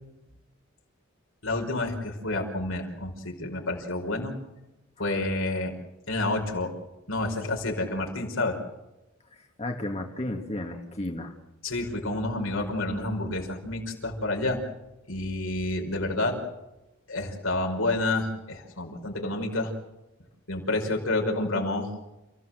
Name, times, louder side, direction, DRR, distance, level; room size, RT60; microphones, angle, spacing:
voice 1, 1.4-4.3 5.0-5.7 6.1-6.7 7.1-8.6 11.6-14.6 15.1-16.4 17.1-19.7 20.5-21.9, left 2 dB, 75° left, 2 dB, 5.3 m, -29 dB
voice 2, 9.3-11.3, left 1 dB, 30° left, 2 dB, 2.1 m, -33 dB
30.0 x 16.5 x 7.8 m, 0.98 s
head